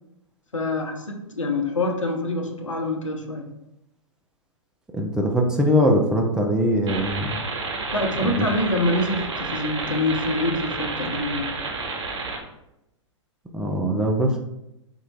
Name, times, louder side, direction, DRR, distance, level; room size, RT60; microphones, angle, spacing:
voice 1, 0.5-3.5 7.9-11.5, left 2 dB, 85° left, 3 dB, 0.7 m, -25 dB
voice 2, 4.9-7.4 8.2-8.5 13.5-14.4, equal, 5° right, 0 dB, 0.4 m, -21 dB
sound 1, 6.9-12.4, right 3 dB, 60° right, 1.1 m, -30 dB
4.2 x 2.7 x 4.0 m, 0.88 s
figure-of-eight pair, 110°, 16 cm